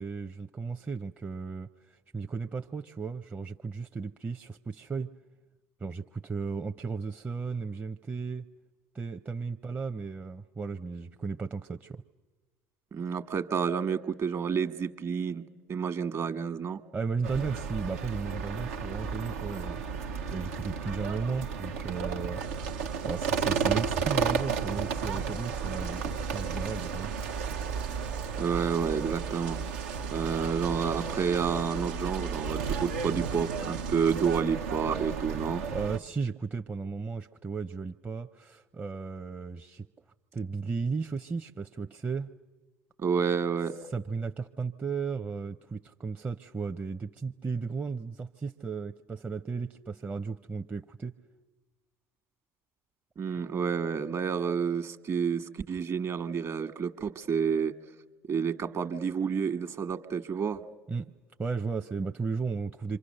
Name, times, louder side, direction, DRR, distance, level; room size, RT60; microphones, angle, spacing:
voice 1, 0.0-5.1 5.8-8.5 8.9-12.0 16.9-19.8 20.3-22.4 23.0-27.1 35.7-39.9 40.3-42.3 43.9-51.1 60.9-61.1 61.4-63.0, right 4 dB, 25° right, 5 dB, 0.7 m, -35 dB
voice 2, 12.9-15.4 15.7-16.8 28.4-29.6 30.1-35.7 43.0-43.8 53.2-57.7 58.3-60.6, right 6 dB, 40° right, 10 dB, 1.4 m, -29 dB
sound 1, 17.2-36.0, right 6 dB, 85° right, 0.9 m, -33 dB
sound 2, 22.4-34.4, right 7 dB, 65° right, 1.3 m, -46 dB
28.0 x 25.0 x 6.6 m, 1.3 s
hypercardioid pair, 70°, 8 cm